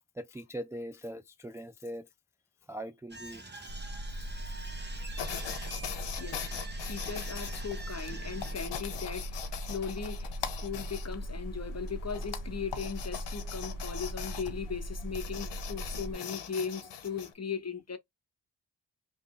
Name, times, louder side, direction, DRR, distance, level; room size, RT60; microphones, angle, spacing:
voice 1, 0.2-2.1 2.7-3.4 4.1-4.6 5.0-5.1, equal, 5° right, 0.3 m, -42 dB
sound 1, 3.1-8.6, right 3 dB, 25° right, 1.1 m, -46 dB
sound 2, 3.7-16.1, right 1 dB, 55° right, 1.2 m, -39 dB
sound 3, 5.2-17.3, left 9 dB, 85° left, 0.8 m, -42 dB
voice 2, 6.2-18.0, left 6 dB, 40° left, 1.0 m, -38 dB
3.0 x 2.6 x 3.6 m
cardioid pair, 45°, 41 cm